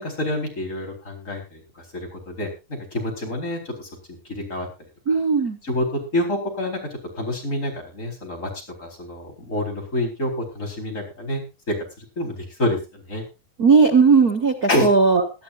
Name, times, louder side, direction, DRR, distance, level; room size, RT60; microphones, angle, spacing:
voice 1, 0.0-4.7 5.1-5.2 5.6-6.8 7.2-8.5 8.8-13.2 14.7-14.9, left 1 dB, 20° left, 1 dB, 4.6 m, -28 dB
voice 2, 5.1-5.6 13.6-15.2, right 5 dB, 60° right, 2 dB, 0.9 m, -17 dB
20.0 x 12.0 x 2.6 m, 0.28 s
omnidirectional pair, 4.2 m